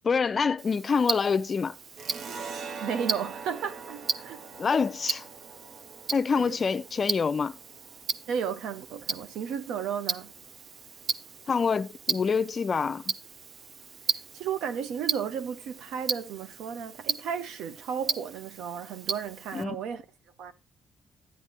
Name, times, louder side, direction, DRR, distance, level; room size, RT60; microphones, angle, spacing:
voice 1, 0.0-1.7 4.6-5.2 6.1-7.5 11.5-13.1 19.5-19.8, left 5 dB, 40° left, 0.5 m, -26 dB
Tick-tock, 0.6-19.6, right 6 dB, 50° right, 0.5 m, -36 dB
sound 1, 2.0-9.2, right 5 dB, 65° right, 1.0 m, -43 dB
voice 2, 2.8-4.4 6.3-6.6 8.3-10.3 14.1-20.0 20.4-20.5, right 7 dB, 85° right, 0.9 m, -34 dB
10.5 x 9.7 x 3.0 m
cardioid pair, 90°, 0 cm